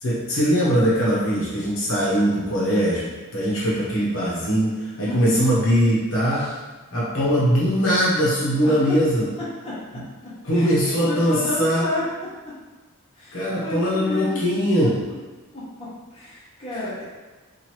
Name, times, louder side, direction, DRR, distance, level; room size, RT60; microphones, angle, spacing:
voice 1, 0.0-6.4 6.9-9.3 10.4-11.8 13.3-15.0, equal, 60° left, -7 dB, 0.9 m, -21 dB
voice 2, 4.9-5.4 6.3-6.5 8.6-9.0 9.6-10.0 10.5-12.0 13.2-14.4 15.8-17.0, left 2 dB, 25° left, -9 dB, 1.1 m, -31 dB
3.0 x 2.5 x 4.4 m, 1.3 s
head